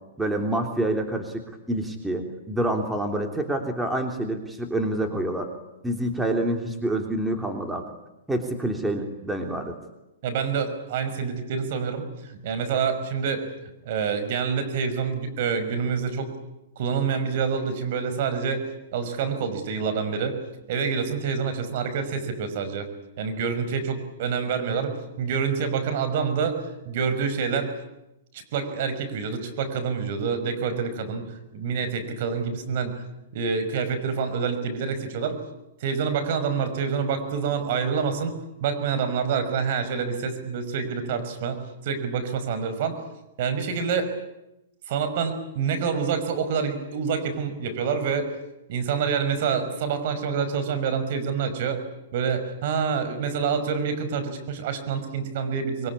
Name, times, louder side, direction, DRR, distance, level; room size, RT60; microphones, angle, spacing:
voice 1, 0.2-5.5 5.8-7.8 8.3-9.8, right 1 dB, 5° right, 3 dB, 3.3 m, -27 dB
voice 2, 10.2-13.5 13.8-16.4 16.8-18.7 18.9-20.4 20.7-22.9 23.2-26.6 26.9-27.8 28.3-31.2 31.5-33.0 33.3-35.4 35.8-38.3 38.6-43.0 43.4-44.1 44.9-48.3 48.7-51.8 52.1-55.9, right 6 dB, 55° right, 9 dB, 5.7 m, -27 dB
24.0 x 23.5 x 9.8 m, 0.90 s
hypercardioid pair, 135°, 0 cm